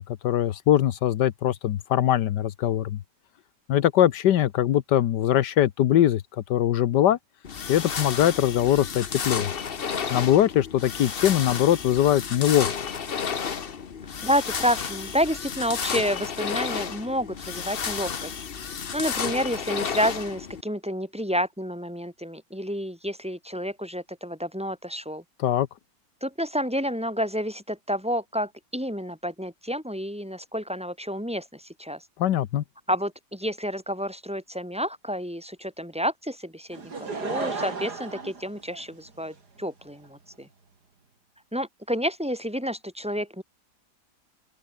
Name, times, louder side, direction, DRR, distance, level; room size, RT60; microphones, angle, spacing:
voice 1, 0.0-3.0 3.7-7.2 7.7-9.5 10.1-12.7 25.4-25.7 32.2-32.6, left 11 dB, 85° left, 1.5 m, -22 dB
sound 1, 7.4-20.6, left 6 dB, 40° left, 1.1 m, -32 dB
voice 2, 14.2-18.3 18.9-25.2 26.2-32.0 32.9-40.5 41.5-43.4, equal, 5° right, 7.3 m, -29 dB
Laughter / Crowd, 36.7-39.3 40.0-40.1, right 4 dB, 70° right, 3.7 m, -34 dB
open air
omnidirectional pair, 1.8 m